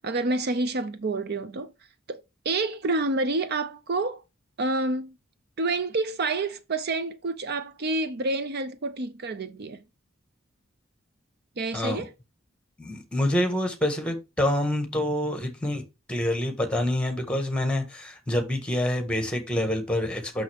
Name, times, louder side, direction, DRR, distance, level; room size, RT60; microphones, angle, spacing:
voice 1, 0.0-1.7 2.1-4.2 4.6-5.1 5.6-9.8 11.6-12.1, right 2 dB, 50° right, 0.6 m, -28 dB
voice 2, 11.7-12.0 12.8-15.8 16.1-20.4, left 1 dB, 5° left, 1.5 m, -27 dB
6.3 x 6.1 x 3.5 m
head